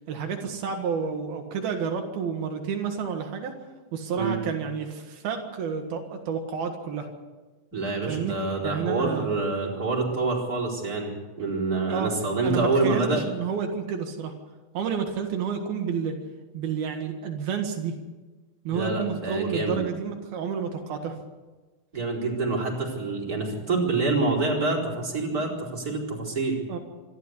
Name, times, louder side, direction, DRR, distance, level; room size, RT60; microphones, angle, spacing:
voice 1, 0.1-3.5 3.9-7.1 8.1-8.4 8.6-9.3 11.9-12.1 12.4-14.3 14.8-16.2 16.5-17.9 18.7-21.1 26.7-26.8, right 6 dB, 85° right, 3 dB, 3.6 m, -30 dB
voice 2, 7.7-13.2 18.7-19.8 21.9-26.6, right 3 dB, 25° right, -2 dB, 4.7 m, -27 dB
26.0 x 12.5 x 8.2 m, 1.2 s
omnidirectional pair, 4.2 m